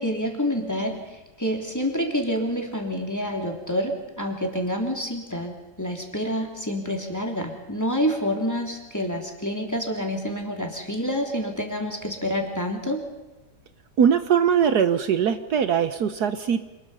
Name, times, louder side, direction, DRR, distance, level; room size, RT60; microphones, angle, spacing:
voice 1, 0.0-13.0, equal, 10° left, 2 dB, 3.2 m, -28 dB
voice 2, 14.0-16.7, right 7 dB, 65° right, 10 dB, 1.5 m, -21 dB
27.0 x 20.5 x 5.6 m, 1.1 s
omnidirectional pair, 1.9 m